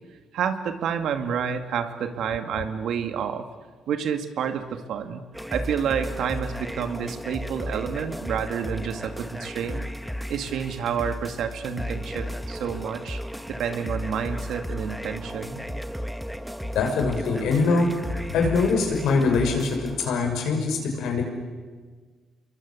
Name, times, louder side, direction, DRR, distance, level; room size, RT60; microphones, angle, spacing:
voice 1, 0.3-3.5 3.9-5.2 5.5-9.8 10.3-13.2 13.5-15.7, right 7 dB, 75° right, 8 dB, 2.2 m, -29 dB
sound 1, 5.3-20.1, equal, ahead, 1.7 m, -34 dB
voice 2, 16.7-17.9 18.3-21.2, left 4 dB, 80° left, 3 dB, 6.2 m, -23 dB
29.0 x 22.0 x 8.4 m, 1.5 s
supercardioid pair, 60°, 0 cm